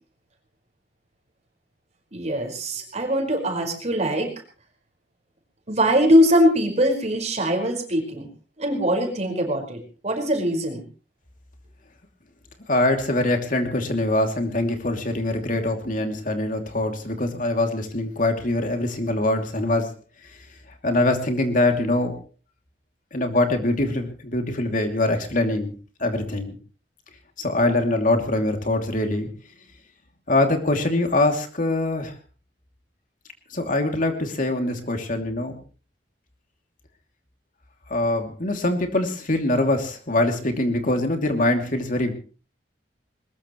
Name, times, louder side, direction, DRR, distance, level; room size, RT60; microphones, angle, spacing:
voice 1, 2.1-4.3 5.7-8.3 8.6-10.8, equal, 40° right, 2 dB, 5.1 m, -22 dB
voice 2, 12.7-19.9 20.2-20.4 20.8-22.2 23.1-25.7 26.0-26.5 27.4-29.3 30.3-32.1 33.5-35.6 37.9-42.1, left 2 dB, 50° left, 4 dB, 2.8 m, -23 dB
21.5 x 20.5 x 3.2 m, 0.36 s
head